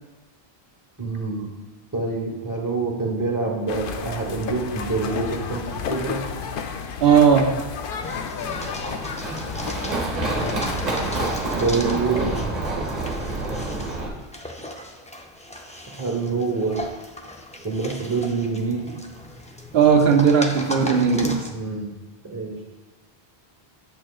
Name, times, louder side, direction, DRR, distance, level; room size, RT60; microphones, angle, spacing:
voice 1, 1.0-1.5 1.9-6.2 11.6-12.4 16.0-16.8 17.6-18.9 21.5-21.9 22.2-22.5, right 4 dB, 20° right, -1 dB, 1.1 m, -26 dB
sound 1, 3.7-11.3, left 6 dB, 65° left, 0.7 m, -32 dB
voice 2, 7.0-7.5 19.7-21.4, right 6 dB, 80° right, 4 dB, 0.8 m, -17 dB
sound 2, 8.0-21.5, left 1 dB, 10° left, 0.4 m, -37 dB
Run, 8.5-14.1, right 2 dB, 40° right, 1.1 m, -28 dB
8.8 x 7.2 x 2.4 m, 1.1 s
omnidirectional pair, 1.0 m